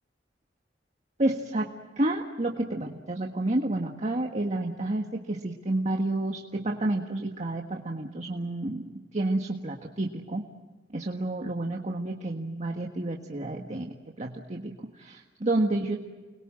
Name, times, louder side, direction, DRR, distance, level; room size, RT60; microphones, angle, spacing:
voice 1, 1.2-8.8 9.1-10.4 10.9-16.0, right 2 dB, 40° right, 2 dB, 1.6 m, -30 dB
30.0 x 22.0 x 7.6 m, 1.3 s
head